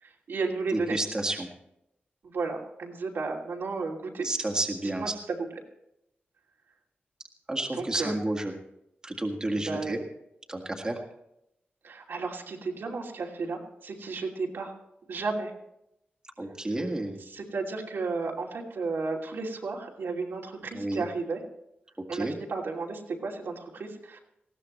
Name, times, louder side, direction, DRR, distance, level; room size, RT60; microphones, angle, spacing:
voice 1, 0.0-1.0 2.2-4.3 5.0-5.1 7.8-8.1 9.5-10.0 11.8-14.7 15.1-15.5 17.3-21.4 22.1-24.2, right 4 dB, 80° right, -1 dB, 2.8 m, -33 dB
voice 2, 0.7-1.5 4.2-5.1 7.5-8.5 9.0-10.0 10.5-11.0 16.4-17.2 20.7-21.0 22.1-22.3, right 1 dB, 20° right, 1 dB, 1.8 m, -30 dB
19.5 x 16.0 x 3.2 m, 0.82 s
wide cardioid pair, 125°, 4 cm